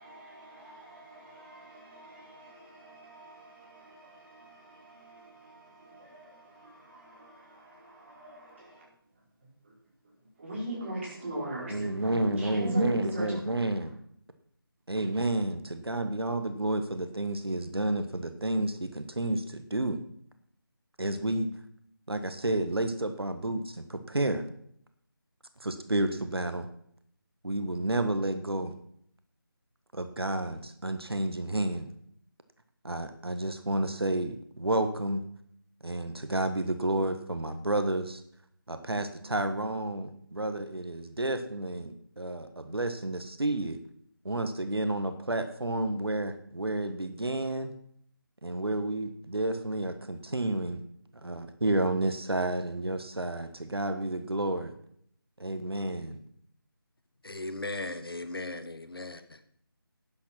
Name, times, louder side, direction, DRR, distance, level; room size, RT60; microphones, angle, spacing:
voice 1, 0.0-8.9 9.1-9.7 10.4-13.6, right 1 dB, 30° right, 4.9 m, -41 dB
voice 2, 11.7-14.0 14.9-20.0 21.0-21.5 22.1-24.5 25.6-26.7 27.4-28.7 29.9-31.9 32.8-35.2 35.8-38.2 38.7-43.8 44.2-47.7 48.4-50.8 51.2-54.7 55.4-56.2, right 1 dB, 85° right, 1.5 m, -30 dB
voice 3, 57.2-59.4, left 2 dB, 75° left, 1.4 m, -37 dB
11.5 x 8.9 x 6.0 m
figure-of-eight pair, 165°, 13 cm